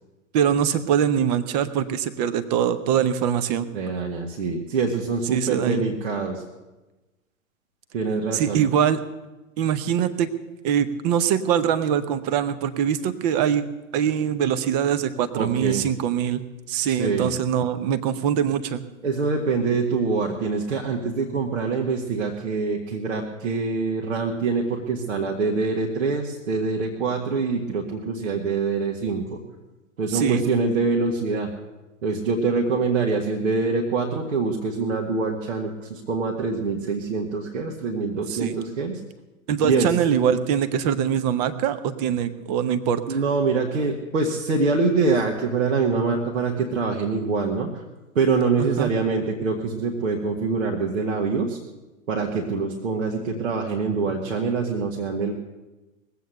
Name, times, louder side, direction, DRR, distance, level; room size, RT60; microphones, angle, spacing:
voice 1, 0.3-3.7 5.3-5.8 8.3-9.0 9.6-10.3 10.6-13.6 13.9-18.8 30.1-30.4 38.3-38.6 39.5-43.0 48.6-48.9, right 8 dB, 30° right, 13 dB, 0.8 m, -23 dB
voice 2, 3.7-6.4 7.9-8.6 15.3-15.9 16.9-17.3 19.0-29.4 30.0-31.5 32.0-39.0 39.6-39.9 43.1-47.8 48.2-51.6 52.1-55.3, right 4 dB, 60° right, 0 dB, 1.7 m, -25 dB
20.0 x 8.2 x 6.6 m, 1.1 s
figure-of-eight pair, 110°, 42 cm